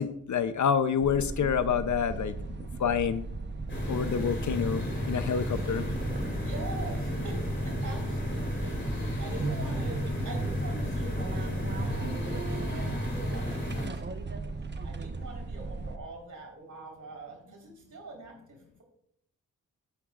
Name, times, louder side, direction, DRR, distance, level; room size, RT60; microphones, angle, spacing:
voice 1, 0.0-2.3 2.8-3.2 3.9-5.9, left 7 dB, 60° left, 12 dB, 0.7 m, -27 dB
sound 1, 1.0-16.0, right 3 dB, 30° right, 1.0 m, -37 dB
sound 2, 3.7-13.9, left 1 dB, 35° left, 3.8 m, -33 dB
voice 2, 6.4-14.4 14.8-18.8, right 3 dB, 60° right, 0 dB, 4.3 m, -44 dB
12.5 x 9.6 x 2.5 m, 0.72 s
cardioid pair, 65°, 34 cm